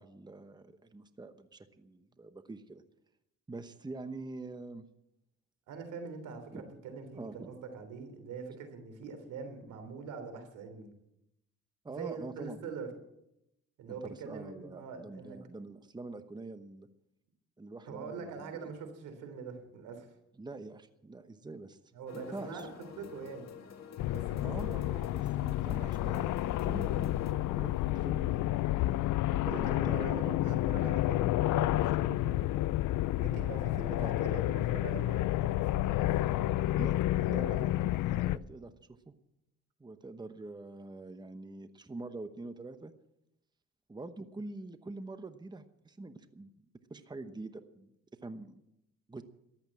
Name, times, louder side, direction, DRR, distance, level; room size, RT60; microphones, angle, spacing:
voice 1, 0.0-2.8 3.5-4.9 6.5-6.7 7.1-7.6 11.8-12.6 13.9-16.9 17.6-18.7 20.4-21.8 22.1-22.7 24.4-28.5 29.5-30.1 34.0-34.2 36.7-37.0 37.3-39.1 39.8-42.9 43.9-46.5 46.9-47.9 48.2-48.6 49.1-49.2, right 2 dB, 15° right, 10 dB, 1.0 m, -45 dB
voice 2, 5.7-10.9 11.9-12.9 13.8-15.4 17.8-20.1 21.9-22.6 23.0-23.5 24.1-24.8 29.3-32.4 33.2-36.6, right 5 dB, 90° right, 8 dB, 3.4 m, -43 dB
sound 1, 22.1-27.3, left 7 dB, 60° left, 1.9 m, -48 dB
sound 2, 24.0-38.4, left 15 dB, 80° left, 0.5 m, -30 dB
14.0 x 11.5 x 7.6 m, 0.84 s
cardioid pair, 90°, 30 cm